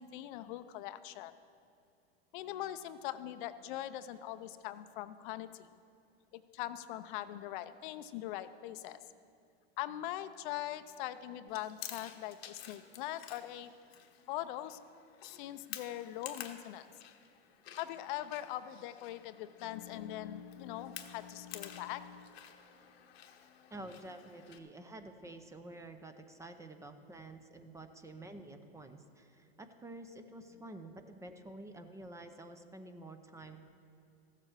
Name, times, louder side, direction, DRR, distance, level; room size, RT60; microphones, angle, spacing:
voice 1, 0.0-1.3 2.3-5.7 6.3-9.0 9.8-13.7 14.3-14.8 15.2-16.9 17.8-22.4 30.5-30.6 33.0-33.1, left 13 dB, 55° left, 12 dB, 0.6 m, -42 dB
Chewing mastication, 11.5-24.6, left 10 dB, 85° left, 1.1 m, -51 dB
voice 2, 23.7-33.6, right 2 dB, 10° right, 8 dB, 0.6 m, -49 dB
14.5 x 7.4 x 6.5 m, 2.5 s
hypercardioid pair, 120°, 30 cm